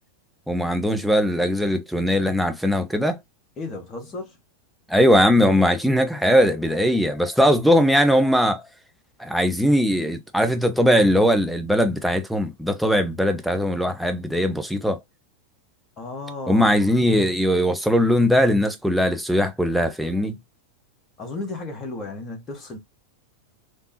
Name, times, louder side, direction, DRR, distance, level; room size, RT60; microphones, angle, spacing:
voice 1, 0.5-3.2 4.9-8.6 9.2-15.0 16.5-20.4, equal, ahead, 0.5 m, -20 dB
voice 2, 3.6-4.4 16.0-16.9 21.2-22.8, left 3 dB, 25° left, 1.1 m, -34 dB
3.3 x 2.0 x 2.7 m
figure-of-eight pair, 90°, 0 cm